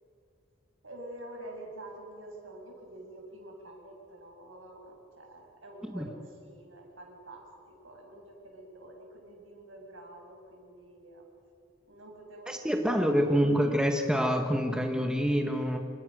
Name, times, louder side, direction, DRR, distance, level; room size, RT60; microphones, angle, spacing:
voice 1, 0.8-11.2 11.8-12.6 12.9-13.1, right 1 dB, 80° right, 1 dB, 7.0 m, -47 dB
voice 2, 12.5-15.8, equal, 5° right, 3 dB, 1.7 m, -26 dB
27.5 x 27.0 x 6.6 m, 2.4 s
head